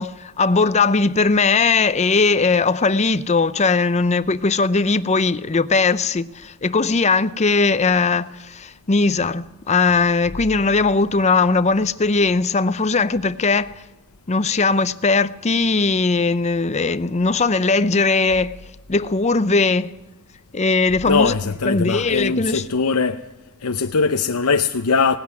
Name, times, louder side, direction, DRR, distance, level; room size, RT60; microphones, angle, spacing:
voice 1, 0.0-13.7 14.3-18.6 18.9-19.9 20.5-21.3 21.7-22.6, left 4 dB, 30° left, 0.6 m, -19 dB
voice 2, 21.1-23.2 23.6-25.2, left 4 dB, 90° left, 0.8 m, -20 dB
18.5 x 15.5 x 9.6 m
head